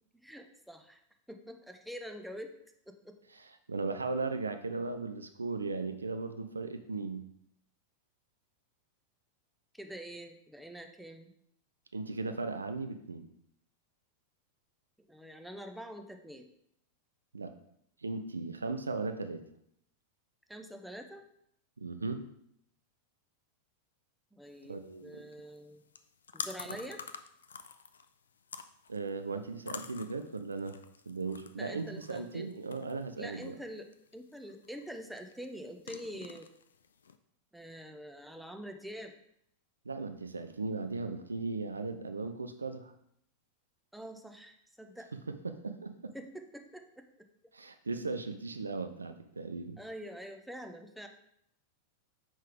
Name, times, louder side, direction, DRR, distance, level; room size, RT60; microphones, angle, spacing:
voice 1, 0.1-1.0 1.3-2.6 2.9-3.2 9.7-11.3 15.1-16.5 20.5-21.2 22.0-22.1 24.3-25.8 26.3-27.0 31.6-32.5 33.2-36.5 37.5-39.1 43.9-45.1 46.1-47.3 49.8-51.1, equal, ahead, 5 dB, 0.6 m, -45 dB
voice 2, 3.7-7.3 11.9-13.3 17.3-17.5 18.0-19.4 21.8-22.2 24.6-25.2 28.9-30.8 31.1-33.5 39.9-42.9 45.4-46.1 47.5-49.8, right 3 dB, 75° right, 8 dB, 0.4 m, -37 dB
sound 1, 24.5-37.2, left 6 dB, 70° left, 0.3 m, -49 dB
5.4 x 5.2 x 3.5 m, 0.71 s
figure-of-eight pair, 90°, 0 cm